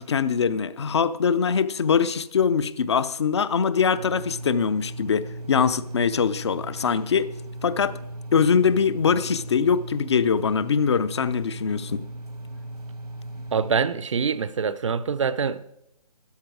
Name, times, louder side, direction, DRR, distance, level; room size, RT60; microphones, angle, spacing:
voice 1, 0.0-7.3 7.6-8.0 8.3-12.0, left 6 dB, 45° left, 0.6 m, -23 dB
Mall Corridor Loud Hum, 3.9-13.8, right 1 dB, 85° right, 1.8 m, -37 dB
voice 2, 13.5-15.6, right 6 dB, 50° right, 0.7 m, -25 dB
13.0 x 10.5 x 4.8 m
figure-of-eight pair, 145°, 20 cm